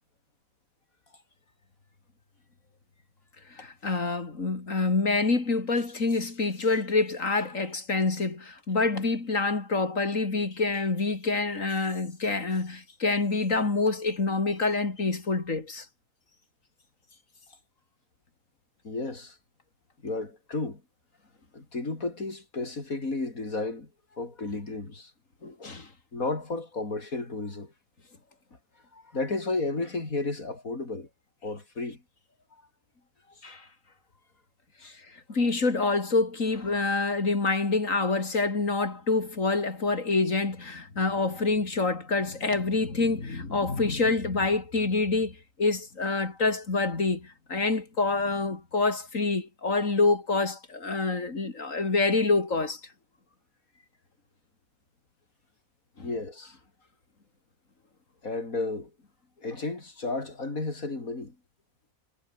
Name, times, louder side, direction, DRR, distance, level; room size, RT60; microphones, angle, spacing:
voice 1, 3.5-15.9 25.6-25.9 33.4-33.7 35.3-52.8 56.0-56.1, left 3 dB, 65° left, 3.6 m, -27 dB
voice 2, 18.8-19.4 20.0-20.8 21.5-25.1 25.4-25.8 26.1-27.7 28.9-31.1 31.4-32.0 33.3-33.4 34.8-35.0 56.0-56.6 58.2-58.9 59.4-61.4, left 3 dB, 85° left, 4.7 m, -33 dB
omnidirectional pair, 1.4 m